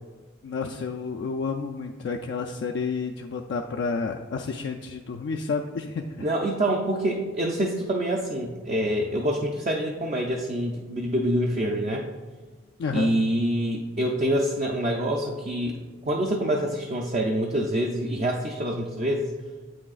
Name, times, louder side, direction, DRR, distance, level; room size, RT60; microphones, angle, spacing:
voice 1, 0.4-6.3 12.8-13.1, left 4 dB, 60° left, 3 dB, 0.3 m, -30 dB
voice 2, 6.2-12.1 12.9-15.8 16.1-19.3, right 1 dB, 35° right, 0 dB, 0.4 m, -26 dB
7.9 x 6.1 x 2.4 m, 1.4 s
head